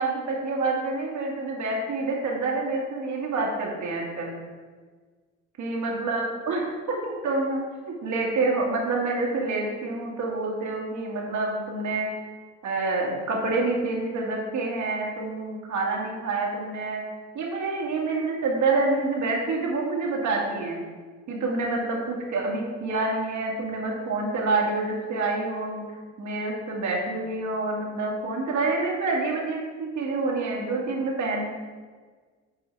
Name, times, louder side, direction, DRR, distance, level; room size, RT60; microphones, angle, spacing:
voice 1, 0.0-4.3 5.6-7.6 7.9-12.1 12.6-17.0 17.3-20.8 21.3-25.8 26.2-31.5, right 3 dB, 70° right, -2 dB, 2.2 m, -27 dB
8.7 x 4.9 x 4.6 m, 1.5 s
cardioid pair, 90°, 30 cm